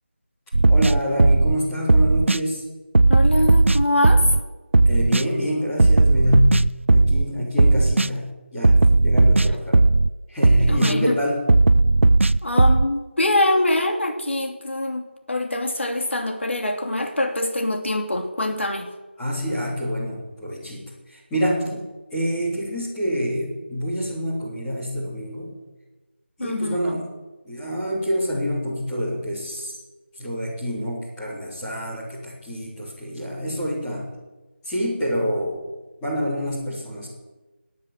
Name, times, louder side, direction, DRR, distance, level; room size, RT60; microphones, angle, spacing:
sound 1, 0.5-1.6 1.9-2.4 2.9-4.4 4.7-5.2 5.8-7.3 7.6-8.1 8.6-10.1 10.4-10.9 11.5-12.9, right 2 dB, 85° right, 0.5 m, -16 dB
voice 1, 0.7-2.6 4.8-9.8 10.3-11.5 19.2-21.8 22.1-25.5 26.4-27.1 27.4-29.7 30.2-34.1 34.6-35.7 36.0-37.1, equal, 5° left, -10 dB, 3.6 m, -27 dB
voice 2, 3.1-4.3 10.7-11.2 12.4-18.9 26.4-26.8, left 1 dB, 75° left, 4 dB, 2.9 m, -24 dB
19.0 x 10.0 x 7.6 m, 1.2 s
figure-of-eight pair, 175°, 7 cm